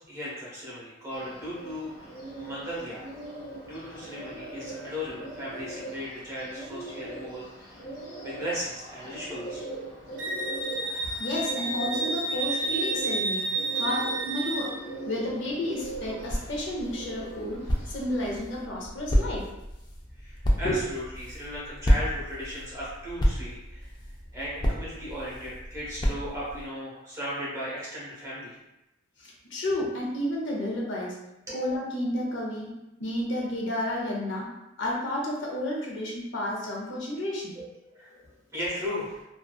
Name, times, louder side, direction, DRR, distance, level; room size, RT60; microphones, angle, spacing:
voice 1, 0.1-3.0 3.6-7.8 8.2-9.6 20.1-23.9 24.3-28.5 37.6-37.7 37.9-38.1 38.5-39.2, equal, 15° right, -8 dB, 0.8 m, -36 dB
Bird, 1.1-18.4, right 2 dB, 85° left, 1.1 m, -41 dB
Wind instrument woodwind instrument, 10.2-14.7, right 3 dB, 70° right, 0.4 m, -30 dB
voice 2, 11.2-14.7 15.1-17.6 17.9-19.5 20.6-20.8 29.2-31.2 31.5-32.7 33.0-34.5 34.8-37.6 38.1-38.2, left 1 dB, 65° left, -3 dB, 0.6 m, -31 dB
sound 1, 15.8-26.7, equal, 20° left, 0.3 m, -30 dB
2.5 x 2.3 x 2.3 m, 0.92 s
head